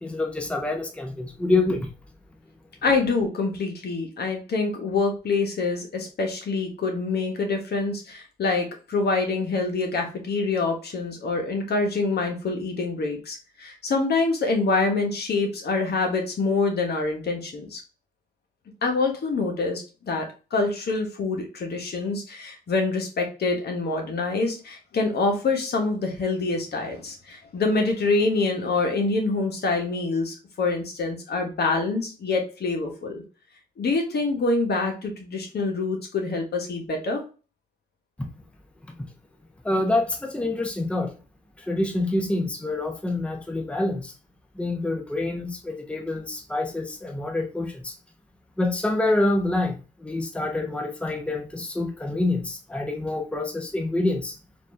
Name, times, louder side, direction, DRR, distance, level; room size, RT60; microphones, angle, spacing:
voice 1, 0.0-1.9 38.2-38.3 39.0-39.1 39.6-41.1 41.6-44.1 44.5-48.0 48.6-54.4, left 2 dB, 5° left, 0.8 m, -26 dB
voice 2, 2.8-17.8 18.8-33.2 33.8-37.2, left 3 dB, 60° left, 1.3 m, -26 dB
4.1 x 2.7 x 3.2 m
supercardioid pair, 60°, 19 cm